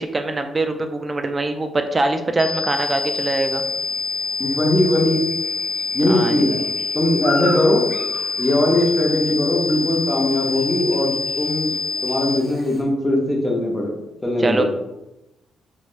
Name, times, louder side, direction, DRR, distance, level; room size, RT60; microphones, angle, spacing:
voice 1, 0.0-3.6 6.0-6.5 14.4-14.6, right 2 dB, 30° right, 6 dB, 0.4 m, -23 dB
sound 1, 2.4-12.4, left 4 dB, 60° left, 0.5 m, -26 dB
Chirp tweet / Buzz, 2.7-12.8, left 2 dB, 40° left, 1.2 m, -37 dB
voice 2, 4.4-5.2 5.9-7.9 8.4-11.7 12.0-14.6, left 1 dB, 15° left, -2 dB, 0.8 m, -20 dB
3.1 x 3.1 x 2.5 m, 0.92 s
cardioid pair, 85°, 0 cm